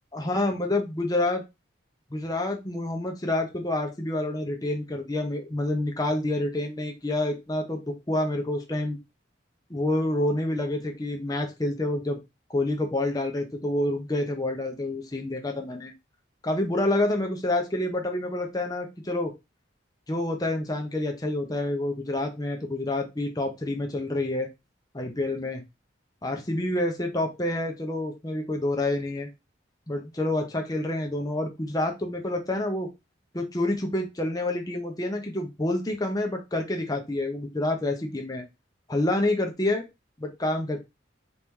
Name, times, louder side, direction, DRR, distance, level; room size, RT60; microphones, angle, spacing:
voice 1, 0.1-1.4 2.1-9.0 9.7-12.2 12.5-15.9 16.4-19.3 20.1-24.5 24.9-25.6 26.2-29.3 29.9-32.9 33.3-38.4 38.9-39.8 40.2-40.8, left 1 dB, 20° left, 3 dB, 0.7 m, -28 dB
4.0 x 3.0 x 3.6 m, 0.23 s
head